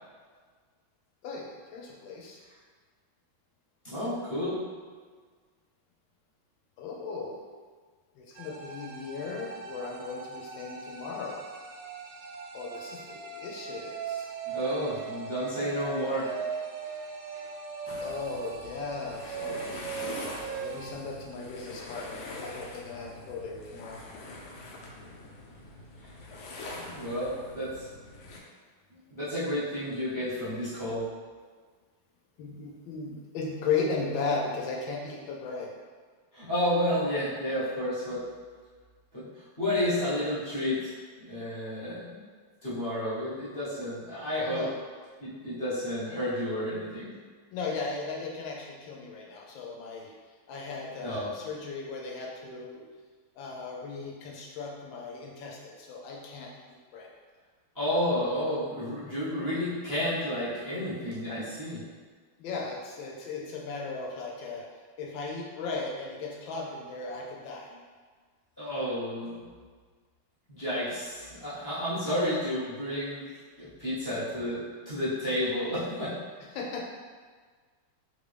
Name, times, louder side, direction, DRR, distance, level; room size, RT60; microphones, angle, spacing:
voice 1, 1.7-2.4 6.8-7.4 8.1-11.4 12.5-14.3 18.0-19.6 20.4-24.0 32.4-35.7 44.5-44.8 47.5-50.1 50.5-52.8 53.4-57.1 62.4-64.6 65.0-67.7 76.5-76.8, left 4 dB, 75° left, -2 dB, 1.2 m, -36 dB
voice 2, 3.8-4.6 14.5-16.3 26.8-27.9 29.1-31.1 36.3-38.2 39.1-39.2 39.6-40.9 41.2-42.2 42.6-44.6 45.2-47.1 51.0-51.3 57.7-61.8 68.6-69.4 70.5-73.3 73.6-76.1, equal, 25° left, -13 dB, 0.4 m, -31 dB
sound 1, 8.3-20.9, right 5 dB, 80° right, 1.4 m, -39 dB
sound 2, 17.9-28.4, left 2 dB, 90° left, 0.9 m, -43 dB
3.3 x 2.6 x 3.3 m, 1.5 s
omnidirectional pair, 2.4 m